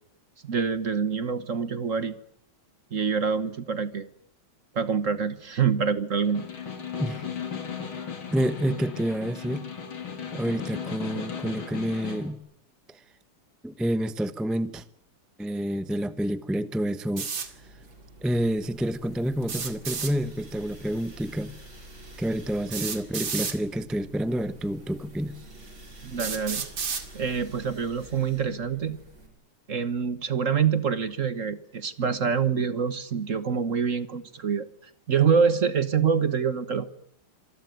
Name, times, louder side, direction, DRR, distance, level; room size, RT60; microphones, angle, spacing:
voice 1, 0.4-2.2 2.9-4.1 4.7-6.5 26.0-26.7 27.1-29.0 29.7-34.7 35.1-36.9, right 6 dB, 45° right, 13 dB, 1.4 m, -26 dB
Snare drum, 6.2-12.3, left 7 dB, 90° left, 4.0 m, -36 dB
voice 2, 8.3-9.6 10.3-12.4 12.9-13.0 13.6-14.8 15.4-17.3 18.2-21.5 22.2-25.3, equal, ahead, 13 dB, 0.7 m, -28 dB
sound 1, 17.2-17.5 19.4-20.1 21.6-21.7 22.7-23.6 24.6-24.7 25.3-25.4 26.2-27.1, right 6 dB, 75° right, 3.1 m, -31 dB
sound 2, 17.3-29.3, right 1 dB, 90° right, 6.5 m, -48 dB
26.5 x 20.0 x 9.2 m, 0.72 s
omnidirectional pair, 2.2 m